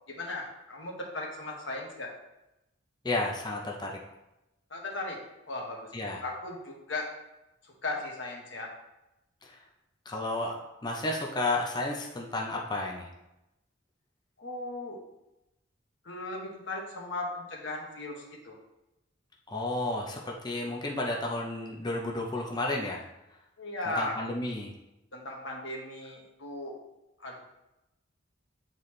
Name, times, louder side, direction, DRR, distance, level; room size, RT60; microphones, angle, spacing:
voice 1, 0.1-2.1 4.7-5.2 5.5-7.1 7.6-8.7 14.4-15.0 16.0-18.6 23.6-24.2 25.1-26.8 27.2-27.4, left 2 dB, 65° left, -1 dB, 1.5 m, -37 dB
voice 2, 3.0-4.0 5.9-6.2 9.4-9.6 10.1-13.1 19.5-23.0 23.9-24.7, left 2 dB, 20° left, 0 dB, 0.6 m, -32 dB
8.9 x 4.1 x 3.2 m, 0.94 s
head